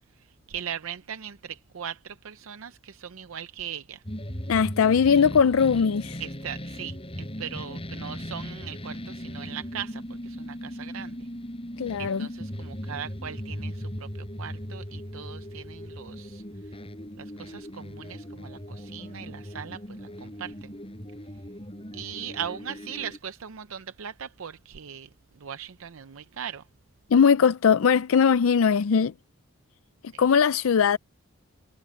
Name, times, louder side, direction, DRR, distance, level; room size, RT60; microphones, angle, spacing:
voice 1, 0.5-4.0 6.2-11.3 12.0-16.4 17.2-20.7 21.9-25.1 25.4-26.6 30.1-30.2, right 8 dB, 70° right, 0.6 m, -39 dB
sound 1, 4.0-23.2, equal, 25° left, 5.5 m, -38 dB
voice 2, 4.5-6.2 11.8-12.3 27.1-29.1 30.2-31.0, left 6 dB, 75° left, 0.4 m, -20 dB
head